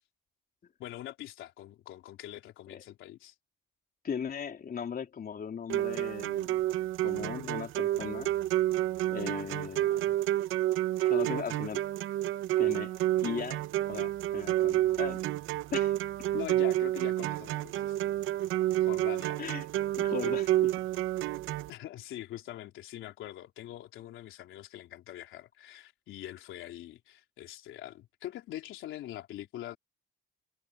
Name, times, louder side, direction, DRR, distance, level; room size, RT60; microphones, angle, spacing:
voice 1, 0.8-3.3 16.3-18.1 18.8-19.4 21.7-29.8, left 13 dB, 85° left, 3.8 m, -43 dB
voice 2, 4.0-6.6 7.0-8.3 9.1-10.1 11.0-11.8 12.6-12.9 13.2-13.6 13.9-15.2 15.7-16.0 19.4-19.7 20.0-20.7, left 7 dB, 50° left, 3.6 m, -38 dB
sound 1, 5.7-21.7, right 14 dB, 85° right, 0.7 m, -29 dB
cardioid pair, 90°, 20 cm